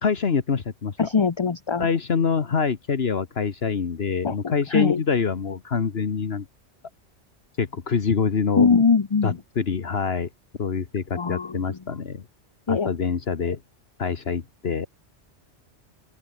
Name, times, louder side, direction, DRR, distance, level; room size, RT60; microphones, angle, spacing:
voice 1, 0.0-1.0 1.8-6.4 7.6-8.7 9.2-10.3 10.6-12.2 12.7-13.6 14.0-14.9, left 5 dB, 60° left, 1.5 m, -25 dB
voice 2, 1.0-1.8 4.2-4.4 4.7-5.0 8.6-9.4 11.1-11.8 12.7-12.9, left 5 dB, 30° left, 0.6 m, -21 dB
open air
omnidirectional pair, 1.2 m